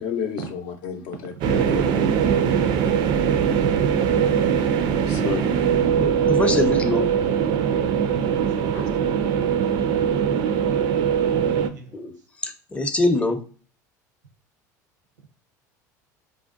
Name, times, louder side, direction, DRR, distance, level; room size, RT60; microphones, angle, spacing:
voice 1, 0.0-2.1 4.0-5.8 6.5-6.7 8.5-8.9, left 7 dB, 60° left, 0.5 m, -32 dB
sound 1, 1.4-11.7, right 8 dB, 55° right, 0.3 m, -21 dB
voice 2, 5.9-7.1 11.9-13.4, left 2 dB, 10° left, 0.5 m, -24 dB
voice 3, 11.6-11.9, right 5 dB, 90° right, 0.7 m, -41 dB
2.6 x 2.1 x 2.5 m
hypercardioid pair, 75°, 9 cm